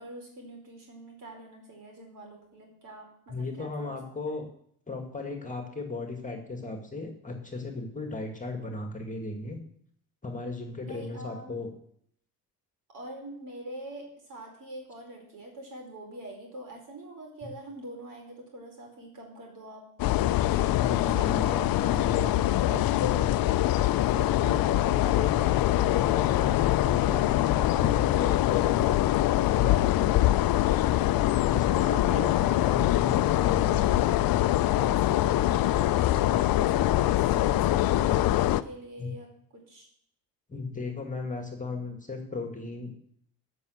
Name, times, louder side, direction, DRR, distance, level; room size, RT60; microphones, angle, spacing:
voice 1, 0.0-4.0 4.3-4.4 10.8-11.5 12.9-19.8 21.0-23.1 31.5-32.3 34.7-39.9, right 1 dB, 55° right, 1 dB, 5.0 m, -44 dB
voice 2, 3.3-4.5 4.9-9.6 10.2-11.7 20.6-22.4 22.7-23.3 24.1-26.5 26.8-29.0 29.5-30.3 31.5-34.0 39.0-39.1 40.5-42.9, left 3 dB, 20° left, 3 dB, 2.1 m, -36 dB
sound 1, 20.0-38.6, left 14 dB, 65° left, 0.6 m, -24 dB
12.5 x 6.2 x 8.1 m, 0.68 s
cardioid pair, 95°, 38 cm